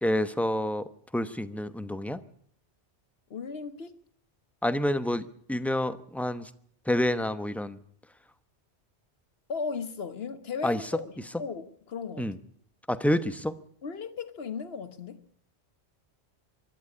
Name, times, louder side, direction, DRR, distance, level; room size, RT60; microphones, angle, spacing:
voice 1, 0.0-2.2 4.6-6.5 6.9-7.8 10.6-10.8 12.2-12.4 12.9-13.6, left 1 dB, ahead, 0.8 m, -28 dB
voice 2, 3.3-3.9 9.5-12.4 13.8-15.2, left 5 dB, 65° left, 1.4 m, -36 dB
24.5 x 11.5 x 9.7 m
omnidirectional pair, 1.1 m